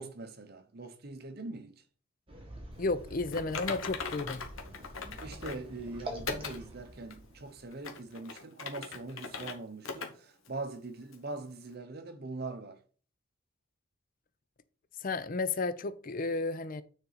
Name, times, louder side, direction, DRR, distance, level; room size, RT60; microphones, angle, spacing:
voice 1, 0.0-1.8 5.2-12.8, right 2 dB, 45° right, 0.8 m, -42 dB
sound 1, 2.3-8.1, right 1 dB, 25° right, 1.6 m, -46 dB
voice 2, 2.8-4.4 15.0-16.8, left 3 dB, 40° left, 0.5 m, -32 dB
Typing, 3.3-5.7 6.3-6.6 7.1-7.2 7.7-9.5 9.8-10.1 10.4-10.5 11.1-11.2, left 5 dB, 75° left, 1.2 m, -39 dB
9.5 x 4.1 x 4.1 m
head